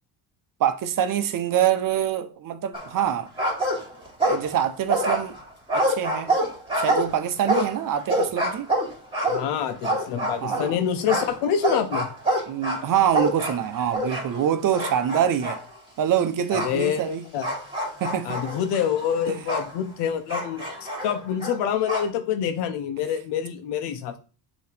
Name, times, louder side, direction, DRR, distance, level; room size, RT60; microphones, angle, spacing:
voice 1, 0.6-3.3 4.2-5.4 5.7-6.3 6.7-8.7 10.4-10.7 12.5-15.6 16.0-17.3 18.0-18.4 19.3-19.5, right 9 dB, 55° right, 0.9 m, -25 dB
sound 1, 2.7-3.1 3.4-4.6 4.9-10.7 11.1-14.4 14.7-15.6 16.5-16.7 17.4-19.7 20.3-22.1, right 1 dB, 15° right, 2.7 m, -26 dB
voice 2, 9.3-12.1 16.5-17.4 18.2-20.6 21.0-24.2, left 8 dB, 85° left, 1.0 m, -26 dB
6.7 x 3.2 x 5.0 m
cardioid pair, 95°, 41 cm